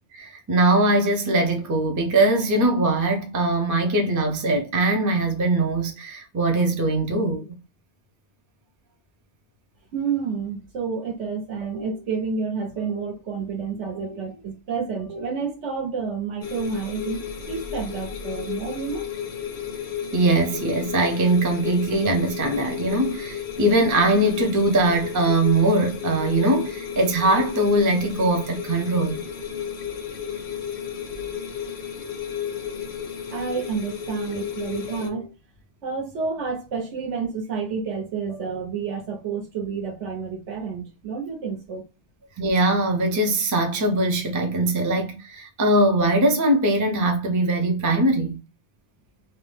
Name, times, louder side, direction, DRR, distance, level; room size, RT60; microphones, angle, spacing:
voice 1, 0.2-7.6 20.1-29.2 42.4-48.4, right 2 dB, 25° right, 0.4 m, -21 dB
voice 2, 9.9-19.1 33.3-35.3 35.8-41.8, right 5 dB, 80° right, 1.3 m, -29 dB
sound 1, 16.4-35.1, left 8 dB, 55° left, 0.6 m, -33 dB
2.7 x 2.2 x 3.2 m
omnidirectional pair, 1.2 m